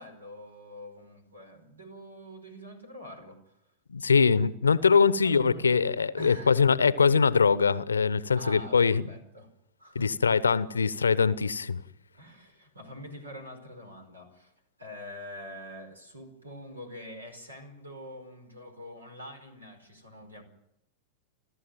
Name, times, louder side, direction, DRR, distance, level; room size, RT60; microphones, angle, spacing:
voice 1, 0.0-3.6 5.2-5.7 6.2-6.6 8.3-9.5 9.8-10.1 12.1-14.5 14.8-20.4, equal, 80° right, 4.8 m, -45 dB
voice 2, 3.9-9.0 9.9-11.8, left 5 dB, 75° left, 0.8 m, -23 dB
29.5 x 12.5 x 9.1 m
figure-of-eight pair, 90°, 0 cm